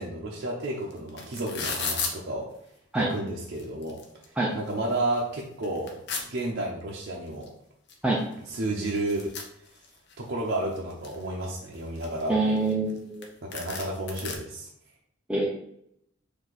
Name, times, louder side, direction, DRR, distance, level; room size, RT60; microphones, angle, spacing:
voice 1, 0.0-2.5 2.9-4.0 4.5-5.9 6.3-7.5 8.5-9.3 10.2-12.3 13.4-14.7, right 1 dB, 55° right, -4 dB, 0.7 m, -31 dB
sound 1, 0.6-0.7 0.9-2.1 3.0-3.1 3.5-4.3 4.7-4.8 5.2-6.2 7.4-7.5 7.9-8.0 8.2-10.1 10.6-11.2 11.7-13.0 13.2-13.3 13.5-14.4, left 5 dB, 60° left, 0.7 m, -34 dB
voice 2, 12.3-13.3 15.3-15.5, right 2 dB, 5° right, -4 dB, 0.5 m, -25 dB
4.5 x 2.6 x 4.0 m, 0.73 s
head